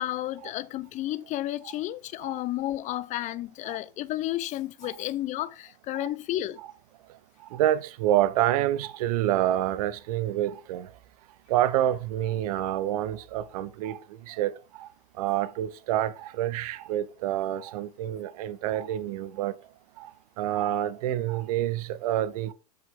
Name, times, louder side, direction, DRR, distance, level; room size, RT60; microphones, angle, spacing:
voice 1, 0.0-6.6, left 14 dB, 35° left, 0.6 m, -32 dB
voice 2, 7.5-10.9 11.5-14.0 14.3-14.9 15.2-19.5 20.0-20.1 20.4-22.5, right 12 dB, 65° right, 0.9 m, -27 dB
7.2 x 5.7 x 3.7 m
hypercardioid pair, 110°, 20 cm